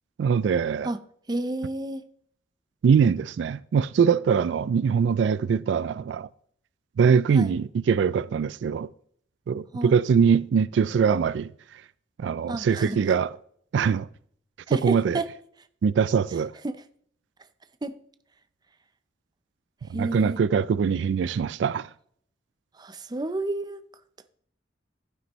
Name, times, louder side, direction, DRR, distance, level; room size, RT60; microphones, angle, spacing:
voice 1, 0.2-0.9 2.8-6.3 7.0-8.9 9.5-11.5 12.2-13.3 13.7-14.1 14.7-15.2 15.8-16.5 20.0-21.9, right 6 dB, 75° right, 0.3 m, -22 dB
voice 2, 1.3-2.0 7.3-7.5 9.7-9.9 12.5-13.1 14.7-15.3 16.6-16.8 17.8-17.9 19.9-20.4 22.8-23.8, right 2 dB, 25° right, 0.5 m, -30 dB
12.0 x 9.6 x 3.1 m
head